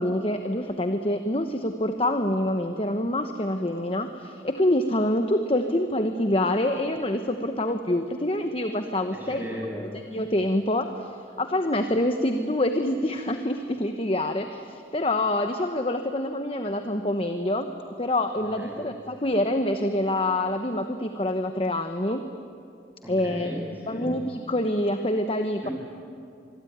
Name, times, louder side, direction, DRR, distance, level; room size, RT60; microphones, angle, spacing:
voice 1, 0.0-9.4 9.9-11.1 11.4-17.7 18.0-22.3 23.1-23.5 23.9-25.7, left 1 dB, 30° left, 7 dB, 1.1 m, -26 dB
voice 2, 9.1-9.9 18.6-18.8 23.0-24.2 25.6-25.7, equal, 10° right, -3 dB, 7.8 m, -36 dB
26.0 x 22.5 x 9.6 m, 2.5 s
head